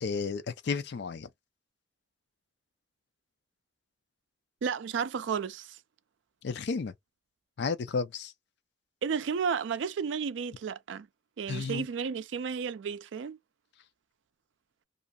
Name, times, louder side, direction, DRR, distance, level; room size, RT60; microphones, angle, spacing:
voice 1, 0.0-1.3 6.4-6.9 7.6-8.3 11.5-11.9, left 5 dB, 65° left, 0.4 m, -32 dB
voice 2, 4.6-5.8 9.0-11.1 11.4-13.4, right 6 dB, 80° right, 0.4 m, -32 dB
2.5 x 2.3 x 2.6 m
head